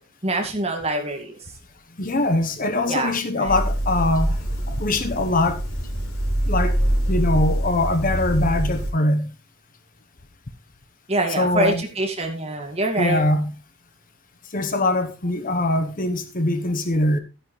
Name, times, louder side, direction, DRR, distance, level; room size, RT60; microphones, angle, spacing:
voice 1, 0.2-1.4 2.9-3.5 11.1-13.2, right 2 dB, 30° right, 2.2 m, -25 dB
voice 2, 2.0-4.4 4.7-5.6 6.5-6.8 7.1-9.3 11.4-11.8 13.0-13.5 14.5-17.2, left 2 dB, 40° left, 1.0 m, -22 dB
sound 1, 3.4-8.9, equal, 75° left, 4.5 m, -24 dB
12.5 x 10.0 x 3.3 m
head